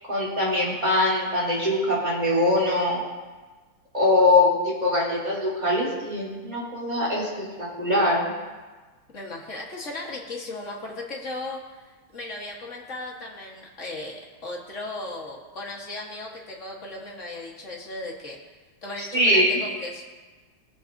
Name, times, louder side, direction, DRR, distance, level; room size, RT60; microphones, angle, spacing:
voice 1, 0.1-3.0 3.9-8.3 19.1-19.6, left 1 dB, 20° right, -7 dB, 2.9 m, -22 dB
voice 2, 9.1-18.4 18.8-20.0, left 2 dB, 40° left, -2 dB, 1.4 m, -36 dB
19.5 x 7.4 x 2.6 m, 1.3 s
omnidirectional pair, 2.4 m